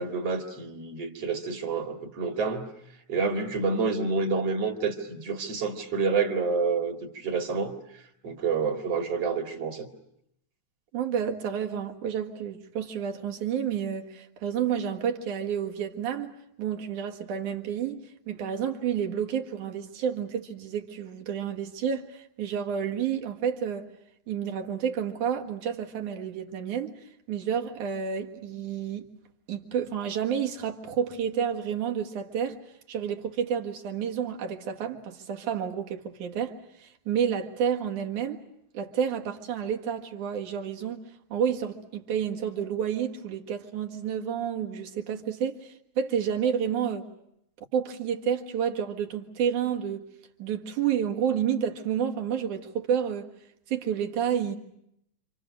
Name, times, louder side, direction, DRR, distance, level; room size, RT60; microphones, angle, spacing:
voice 1, 0.0-2.7 3.1-7.8 8.2-9.9, right 4 dB, 55° right, 3.1 m, -28 dB
voice 2, 10.9-16.3 16.6-23.9 24.3-27.0 27.3-29.1 29.5-32.6 32.9-38.4 38.7-41.0 41.3-47.1 47.7-50.1 50.4-53.3 53.7-54.6, right 8 dB, 85° right, 3.2 m, -30 dB
28.0 x 27.5 x 6.4 m
omnidirectional pair, 3.4 m